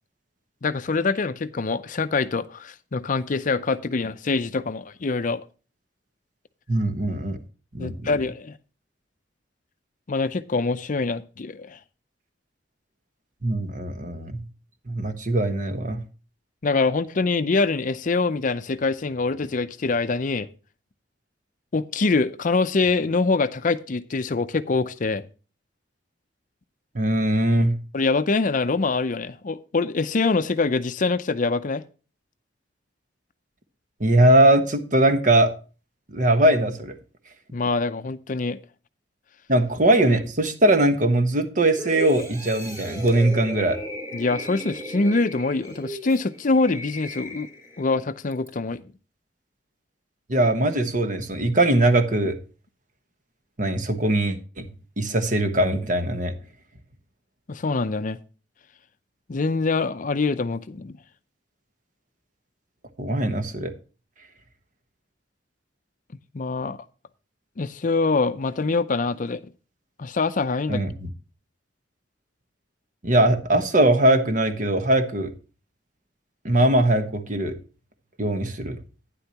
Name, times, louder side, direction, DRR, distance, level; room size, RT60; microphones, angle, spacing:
voice 1, 0.6-5.4 7.8-8.6 10.1-11.8 16.6-20.5 21.7-25.2 27.9-31.8 37.5-38.6 44.1-47.5 47.8-48.8 57.5-58.2 59.3-60.9 66.3-66.8 67.6-69.4 70.0-70.8, left 3 dB, 45° left, 0.5 m, -24 dB
voice 2, 6.7-7.4 7.7-8.1 13.4-14.4 14.9-16.0 26.9-27.7 34.0-35.5 36.1-36.9 39.5-43.8 50.3-52.4 53.6-54.7 55.0-56.3 63.0-63.7 70.7-71.1 73.0-75.3 76.4-77.6 78.2-78.8, right 1 dB, 45° right, 1.2 m, -21 dB
sound 1, 41.8-47.9 48.3-48.5, equal, 20° right, 3.2 m, -35 dB
11.5 x 10.0 x 2.9 m
head